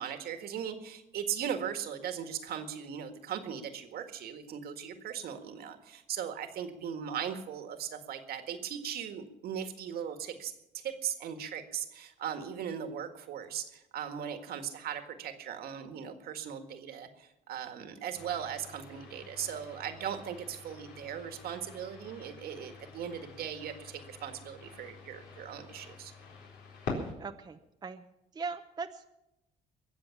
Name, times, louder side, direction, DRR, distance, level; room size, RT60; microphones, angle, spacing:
voice 1, 0.0-26.1, right 8 dB, 65° right, 7 dB, 1.8 m, -38 dB
sound 1, 18.1-27.1, left 3 dB, 75° left, 4.1 m, -46 dB
voice 2, 27.2-28.1 28.3-29.1, right 4 dB, 25° right, 6 dB, 0.8 m, -40 dB
21.5 x 7.7 x 7.1 m, 0.89 s
cardioid pair, 110°, 17 cm